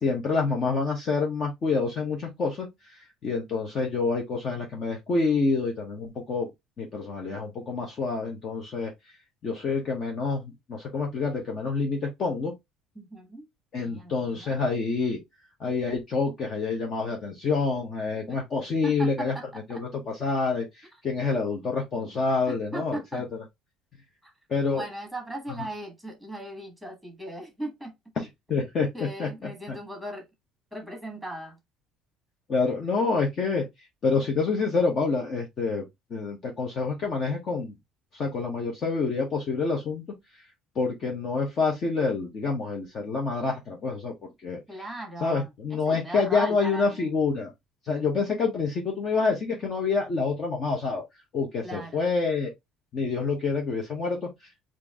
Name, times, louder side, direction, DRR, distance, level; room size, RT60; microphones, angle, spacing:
voice 1, 0.0-6.5 6.8-8.9 9.4-10.4 10.7-12.5 13.7-15.2 15.6-19.3 19.7-23.2 24.5-24.8 28.2-29.8 32.5-33.6 34.0-35.8 36.1-37.7 38.1-40.0 40.7-44.6 45.2-47.5 47.8-51.0 51.3-52.5 52.9-54.3, left 4 dB, 30° left, 0.9 m, -27 dB
voice 2, 12.9-13.5 13.8-14.5 18.3-18.4 18.8-19.8 22.5-23.2 24.2-24.3 24.7-27.9 28.9-30.3 30.7-31.6 44.7-47.1 51.6-52.0, right 1 dB, ahead, 1.5 m, -37 dB
4.5 x 2.5 x 3.5 m
cardioid pair, 175°, 0 cm